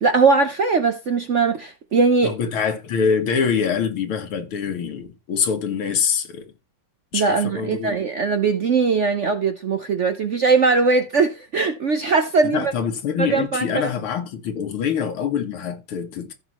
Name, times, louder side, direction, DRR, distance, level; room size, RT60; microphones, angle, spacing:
voice 1, 0.0-2.3 7.1-12.7 13.2-13.9, right 4 dB, 70° right, 0.7 m, -20 dB
voice 2, 2.2-6.5 7.1-8.0 12.4-16.3, left 6 dB, 80° left, 2.2 m, -24 dB
15.0 x 5.4 x 3.0 m
omnidirectional pair, 2.3 m